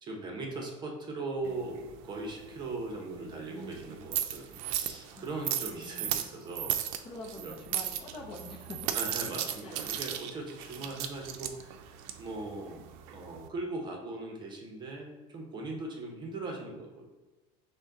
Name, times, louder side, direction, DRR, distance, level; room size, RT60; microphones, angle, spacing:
voice 1, 0.0-6.8 7.3-7.5 8.9-12.9 13.1-17.1, right 2 dB, 25° right, 1 dB, 0.8 m, -39 dB
sound 1, 1.4-13.5, right 10 dB, 80° right, 0.5 m, -37 dB
voice 2, 5.1-5.6 7.0-8.9 9.6-9.8 15.7-15.9, left 2 dB, 30° left, 1 dB, 0.7 m, -45 dB
6.4 x 2.2 x 3.8 m, 1.1 s
cardioid pair, 150°, 17 cm